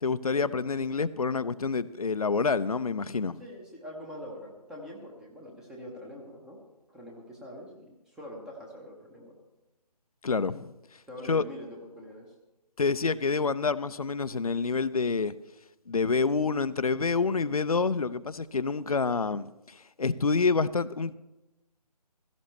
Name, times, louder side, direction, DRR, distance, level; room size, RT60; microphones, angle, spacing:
voice 1, 0.0-3.4 10.2-11.0 11.3-11.4 12.8-15.3 15.9-21.1, left 4 dB, 60° left, 0.6 m, -28 dB
voice 2, 3.4-6.6 6.9-9.3 11.1-12.3, left 1 dB, 5° right, 0.9 m, -44 dB
16.0 x 14.0 x 3.2 m
figure-of-eight pair, 150°, 21 cm